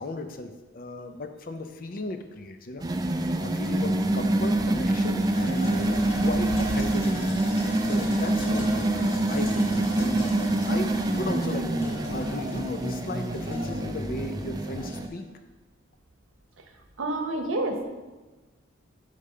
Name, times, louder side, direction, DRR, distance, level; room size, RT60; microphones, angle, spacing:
voice 1, 0.0-2.8 3.4-7.3 7.8-15.2, left 2 dB, 45° left, 7 dB, 0.5 m, -36 dB
sound 1, 2.8-15.1, right 1 dB, 20° right, 0.4 m, -26 dB
sound 2, 4.8-15.2, left 1 dB, 85° left, 1.4 m, -40 dB
voice 2, 17.0-17.8, right 2 dB, 90° right, 5 dB, 0.9 m, -28 dB
5.2 x 5.0 x 5.5 m, 1.2 s
head